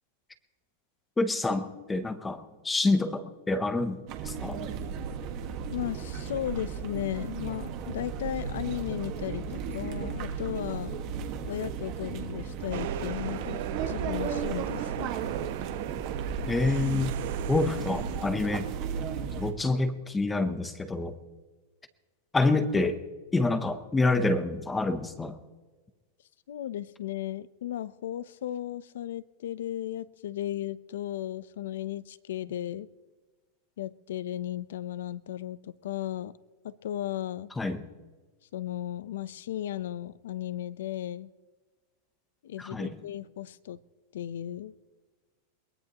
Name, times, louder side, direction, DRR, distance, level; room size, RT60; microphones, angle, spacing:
voice 1, 1.2-4.7 16.5-17.1 17.5-18.7 19.4-21.1 22.3-23.0 23.3-25.4 37.6-37.8 42.6-43.0, left 2 dB, 5° left, 10 dB, 0.7 m, -27 dB
sound 1, 4.1-19.5, right 6 dB, 35° right, 1.6 m, -35 dB
voice 2, 5.7-11.0 11.5-15.1 26.5-32.9 33.8-36.3 36.6-37.5 38.5-41.3 42.4-43.8 44.1-44.7, left 12 dB, 75° left, 17 dB, 0.7 m, -35 dB
sound 2, 12.7-18.3, right 12 dB, 50° right, 0.9 m, -37 dB
22.0 x 20.0 x 3.0 m, 1.3 s
supercardioid pair, 175°, 0 cm